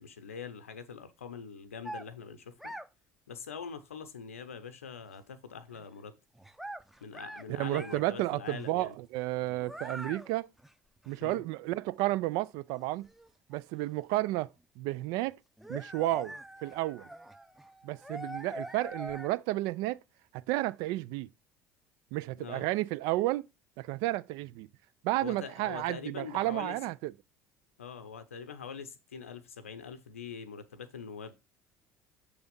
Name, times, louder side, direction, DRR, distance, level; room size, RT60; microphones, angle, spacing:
voice 1, 0.0-2.7 3.3-6.1 7.0-9.0 11.2-11.4 22.4-22.6 25.2-26.8 27.8-31.3, left 6 dB, 85° left, 0.7 m, -43 dB
sound 1, 1.8-2.1 2.6-2.9 5.7-5.8 6.4-7.4 7.7-8.0 8.5-8.6 9.4-10.3 10.6-10.7 11.0-11.1 12.1-12.2 12.7-13.8 14.2-14.3 15.2-15.3 15.6-19.3, right 1 dB, 5° right, 0.6 m, -43 dB
voice 2, 7.5-10.5 11.1-13.1 13.5-14.5 14.8-15.4 15.7-16.3 16.6-17.1 17.8-20.0 20.3-21.3 22.1-23.4 23.8-24.7 25.0-27.1, right 18 dB, 65° right, 0.4 m, -32 dB
7.0 x 3.4 x 5.2 m
hypercardioid pair, 60°, 7 cm